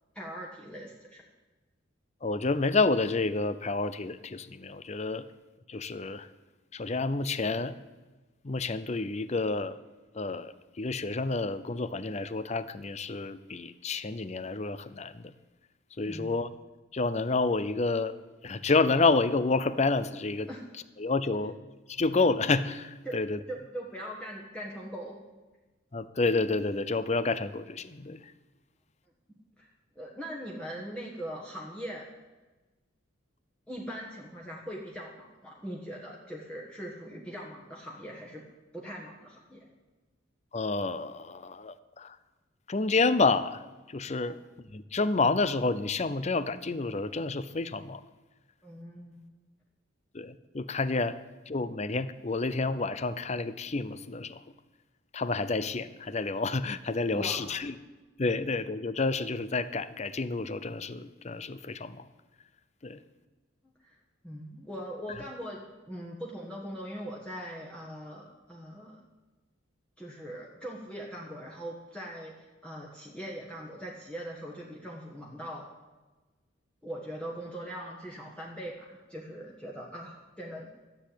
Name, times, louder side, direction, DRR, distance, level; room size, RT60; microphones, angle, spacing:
voice 1, 0.1-1.2 16.1-16.4 20.5-20.6 23.0-23.2 23.5-25.2 29.6-29.7 29.9-32.1 33.7-38.4 38.7-39.7 44.2-44.4 48.6-49.2 57.0-57.4 63.8-63.9 64.2-69.0 70.0-75.7 76.8-80.7, equal, 5° left, -4 dB, 1.5 m, -41 dB
voice 2, 2.2-5.2 5.7-6.3 6.7-7.7 8.4-9.8 10.1-15.3 16.0-16.5 16.9-18.1 18.4-20.5 21.0-21.5 21.9-23.4 25.9-28.2 40.5-42.2 42.7-43.6 43.9-44.4 44.7-48.0 50.1-51.2 51.5-54.4 55.1-57.7 58.2-62.0 62.8-63.0, left 3 dB, 35° left, 14 dB, 0.6 m, -29 dB
13.5 x 7.6 x 8.6 m, 1.2 s
head